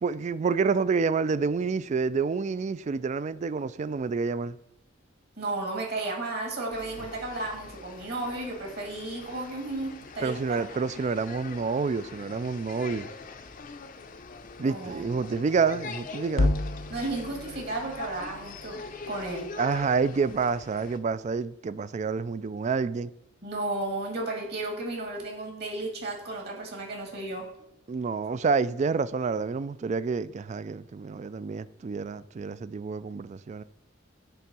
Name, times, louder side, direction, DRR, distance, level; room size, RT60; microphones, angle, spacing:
voice 1, 0.0-4.6 10.2-13.1 14.6-16.5 19.6-23.1 27.9-33.6, right 5 dB, 35° right, 0.3 m, -28 dB
voice 2, 5.4-10.6 14.6-15.1 16.9-19.5 23.4-27.5, right 2 dB, 55° right, 2.0 m, -33 dB
sound 1, 6.7-21.0, left 4 dB, 45° left, 0.6 m, -43 dB
sound 2, 16.4-20.7, left 2 dB, 80° left, 0.7 m, -33 dB
10.0 x 3.5 x 6.0 m
head